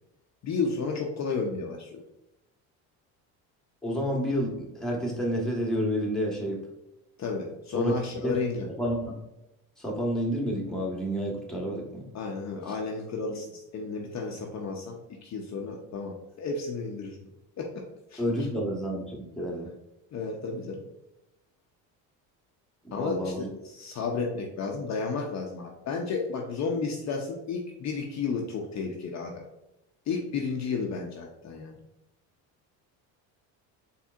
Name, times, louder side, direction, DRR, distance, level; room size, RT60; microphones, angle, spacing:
voice 1, 0.4-2.0 7.2-8.7 12.1-17.3 17.6-18.2 20.1-20.8 22.9-29.4 30.1-31.8, left 4 dB, 40° left, 1 dB, 0.7 m, -32 dB
voice 2, 3.8-6.6 7.7-7.9 8.2-8.4 8.8-9.1 9.8-12.1 18.2-19.7 22.8-23.5, equal, ahead, -2 dB, 1.2 m, -29 dB
4.3 x 3.4 x 2.4 m, 0.93 s
supercardioid pair, 90°, 40 cm